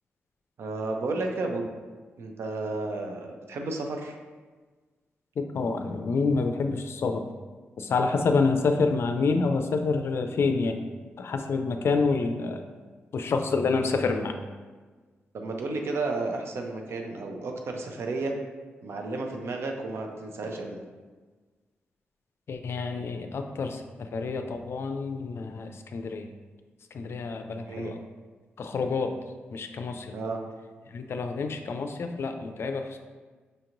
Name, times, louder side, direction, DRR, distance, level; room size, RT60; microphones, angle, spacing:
voice 1, 0.6-1.7 2.2-4.2 15.3-18.4 18.8-20.8 27.6-28.0 30.1-30.4, right 3 dB, 70° right, 3 dB, 0.6 m, -32 dB
voice 2, 5.4-7.2 7.8-10.8 11.2-12.6 13.1-14.4 22.5-26.3 26.9-28.0 28.6-29.1 29.5-30.1 30.9-33.0, left 4 dB, 65° left, 6 dB, 0.4 m, -28 dB
5.2 x 2.9 x 2.6 m, 1.4 s
cardioid pair, 55°, 5 cm